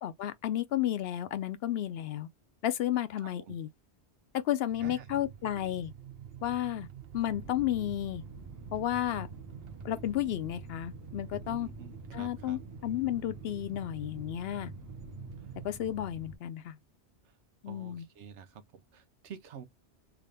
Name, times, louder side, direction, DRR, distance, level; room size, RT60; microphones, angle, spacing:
voice 1, 0.0-2.3 2.6-3.7 4.3-5.9 6.4-6.9 7.1-8.2 8.7-9.3 9.8-11.7 12.1-14.7 15.6-16.8 17.6-18.1, left 12 dB, 70° left, 0.7 m, -32 dB
voice 2, 3.2-3.6 4.8-5.1 11.4-12.6 15.4-15.5 17.2-17.4 17.7-19.6, right 7 dB, 85° right, 1.1 m, -49 dB
sound 1, 4.7-15.7, right 9 dB, 65° right, 0.8 m, -48 dB
sound 2, 7.3-16.4, right 1 dB, 20° right, 0.6 m, -48 dB
3.6 x 2.5 x 3.3 m
omnidirectional pair, 1.2 m